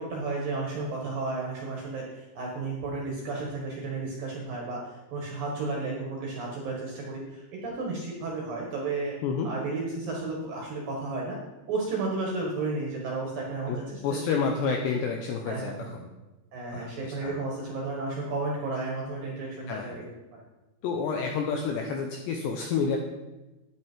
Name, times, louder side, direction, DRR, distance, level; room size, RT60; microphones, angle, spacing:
voice 1, 0.0-9.2 9.4-11.4 11.7-14.9 15.5-15.9 16.5-20.4, right 3 dB, 60° right, -1 dB, 2.6 m, -33 dB
voice 2, 14.0-16.1 16.7-17.4 19.7-20.0 20.8-23.0, left 5 dB, 75° left, 2 dB, 2.6 m, -29 dB
12.0 x 9.6 x 4.5 m, 1.1 s
omnidirectional pair, 5.9 m